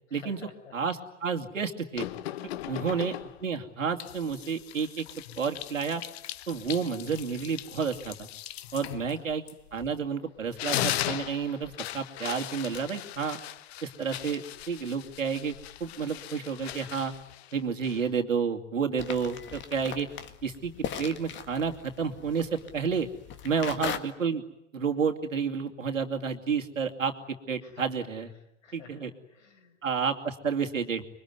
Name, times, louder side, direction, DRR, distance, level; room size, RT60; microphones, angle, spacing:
voice 1, 0.1-0.8 2.6-2.9 8.8-9.2 23.5-23.7 27.6-27.9 28.3-29.8, left 6 dB, 75° left, 5 dB, 6.2 m, -51 dB
voice 2, 0.7-2.1 2.7-3.1 3.4-5.1 5.4-6.0 6.5-8.3 8.7-9.4 9.7-13.4 13.8-15.5 15.8-17.1 17.5-20.1 20.4-23.1 23.4-24.4 24.7-27.1 27.5-28.3 28.7-29.1 29.8-31.0, right 6 dB, 85° right, 4 dB, 2.6 m, -30 dB
sound 1, 2.0-3.5 4.0-10.1 10.4-18.2, left 13 dB, 55° left, 1.1 m, -38 dB
sound 2, 19.0-24.0, left 8 dB, 30° left, 1.8 m, -39 dB
26.0 x 23.5 x 9.5 m, 0.81 s
hypercardioid pair, 105°, 38 cm